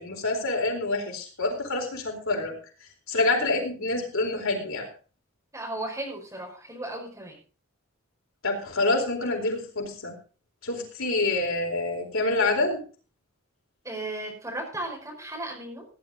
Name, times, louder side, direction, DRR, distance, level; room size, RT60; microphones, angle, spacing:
voice 1, 0.0-2.5 3.1-4.9 8.4-10.1 10.6-12.8, left 2 dB, 85° left, 1 dB, 4.2 m, -27 dB
voice 2, 5.5-7.4 13.8-15.9, right 1 dB, 15° right, 0 dB, 5.2 m, -35 dB
17.0 x 10.5 x 3.9 m, 0.37 s
head